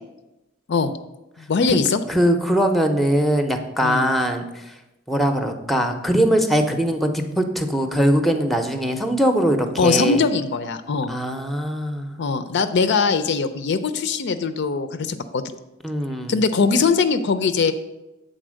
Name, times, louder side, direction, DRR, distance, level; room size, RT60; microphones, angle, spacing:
voice 1, 1.4-2.0 3.8-4.1 9.8-11.1 12.2-15.4 16.3-17.7, left 4 dB, 55° left, 11 dB, 0.4 m, -21 dB
voice 2, 2.1-4.7 5.1-10.2 11.1-12.2 15.8-16.3, equal, ahead, 6 dB, 0.6 m, -21 dB
7.8 x 4.0 x 6.2 m, 0.98 s
head